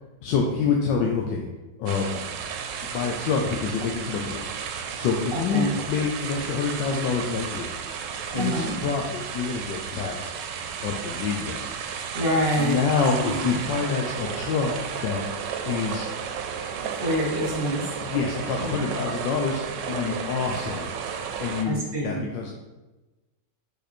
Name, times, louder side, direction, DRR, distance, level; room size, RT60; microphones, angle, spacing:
voice 1, 0.2-1.5 1.8-2.2 2.8-4.5 5.0-7.7 8.3-10.3 10.8-11.6 12.6-15.2 15.7-16.1 18.0-20.9 21.4-21.8 22.0-22.5, left 5 dB, 80° left, 0 dB, 1.3 m, -27 dB
sound 1, 1.9-21.6, right 7 dB, 80° right, 1.3 m, -33 dB
voice 2, 5.3-5.7 8.3-8.7 12.1-12.8 13.2-13.6 16.8-17.9 18.6-18.9 21.6-22.2, equal, 35° right, -2 dB, 1.3 m, -26 dB
5.4 x 4.3 x 4.3 m, 1.1 s
omnidirectional pair, 2.0 m